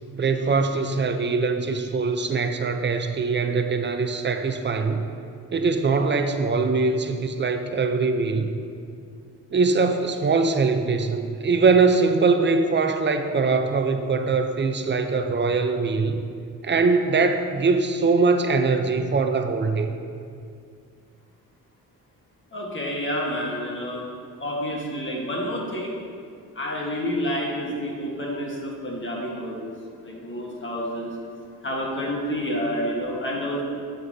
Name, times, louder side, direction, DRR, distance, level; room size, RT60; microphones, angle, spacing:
voice 1, 0.1-5.1 5.5-8.5 9.5-16.2 16.6-19.9, right 4 dB, 30° right, 7 dB, 0.6 m, -22 dB
voice 2, 22.5-24.1 24.4-26.0 26.6-29.7 30.0-31.1 31.6-33.6, equal, 35° left, -3 dB, 1.5 m, -29 dB
7.8 x 7.7 x 2.8 m, 2.3 s
cardioid pair, 70°, 35 cm